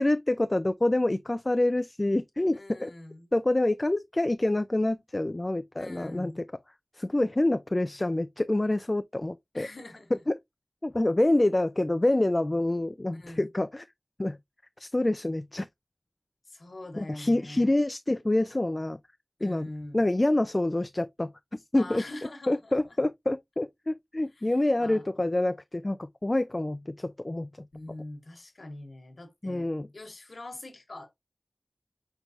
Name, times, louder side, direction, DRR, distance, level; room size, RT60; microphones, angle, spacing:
voice 1, 0.0-2.9 3.3-6.4 7.0-9.7 10.3-10.4 10.8-13.8 14.2-14.4 14.8-15.7 17.0-19.0 19.4-19.7 19.9-22.0 22.5-27.7 29.4-29.9, left 1 dB, 40° left, 0.4 m, -27 dB
voice 2, 2.5-3.3 5.8-6.5 9.5-10.2 13.1-13.5 16.5-17.7 19.4-20.0 21.7-23.0 24.3-24.5 24.8-25.1 27.7-31.1, left 2 dB, 90° left, 1.3 m, -43 dB
6.0 x 3.2 x 2.7 m
wide cardioid pair, 40°, 0 cm